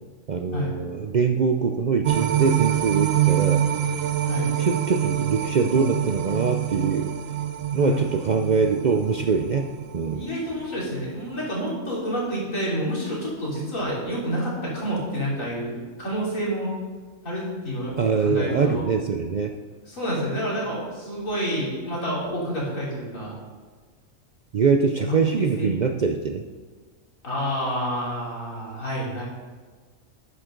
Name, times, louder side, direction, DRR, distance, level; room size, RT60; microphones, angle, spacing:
voice 1, 0.3-3.6 4.6-7.1 7.7-9.7 9.9-10.3 18.0-19.5 24.5-26.4, right 5 dB, 55° right, 5 dB, 0.5 m, -23 dB
sound 1, 2.0-10.4 10.8-10.9, right 11 dB, 90° right, 1.1 m, -26 dB
voice 2, 7.7-8.0 10.1-16.7 17.2-18.0 18.2-18.9 19.9-23.4 25.0-25.7 27.2-29.2, equal, 90° left, -5 dB, 3.8 m, -28 dB
11.5 x 9.6 x 3.8 m, 1.5 s
omnidirectional pair, 1.4 m